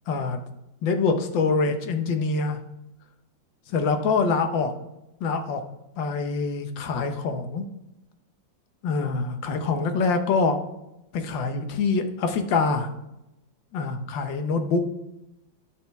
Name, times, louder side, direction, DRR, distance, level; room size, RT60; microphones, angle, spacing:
voice 1, 0.1-0.4 0.8-2.6 3.7-4.7 5.2-5.6 6.0-7.7 8.8-10.6 11.1-12.9 13.7-14.9, left 4 dB, 80° left, 7 dB, 1.6 m, -25 dB
10.5 x 6.1 x 3.5 m, 0.89 s
omnidirectional pair, 2.0 m